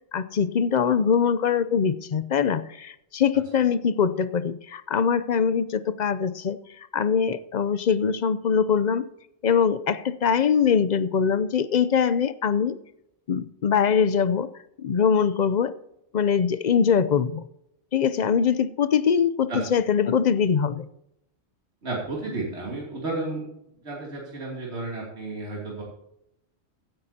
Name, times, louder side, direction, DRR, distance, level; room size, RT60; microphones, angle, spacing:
voice 1, 0.1-6.6 6.9-9.1 9.4-12.8 13.3-14.5 14.8-15.7 16.1-17.5 17.9-20.9, left 7 dB, 50° left, 0.6 m, -22 dB
voice 2, 21.8-23.4 23.8-25.8, right 2 dB, 75° right, 3.1 m, -32 dB
16.0 x 9.5 x 2.8 m
omnidirectional pair, 1.1 m